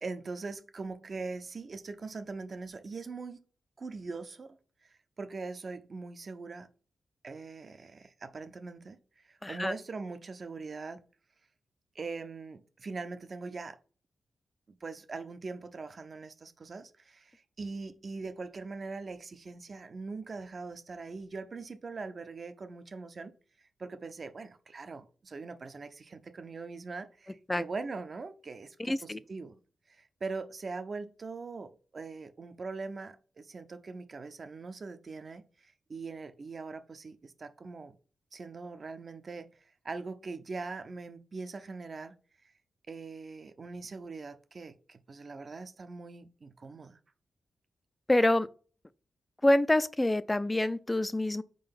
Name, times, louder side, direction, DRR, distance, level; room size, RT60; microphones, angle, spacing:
voice 1, 0.0-3.4 3.8-6.7 7.2-11.0 11.9-13.8 14.7-23.3 23.8-29.5 29.9-38.0 38.3-39.5 39.8-42.2 42.9-47.0, right 4 dB, 45° right, 0.6 m, -42 dB
voice 2, 9.4-9.7 27.5-27.6 28.9-29.2 48.1-48.5 49.4-51.4, left 1 dB, 15° left, 0.3 m, -26 dB
4.8 x 3.8 x 5.2 m
wide cardioid pair, 105°, 0 cm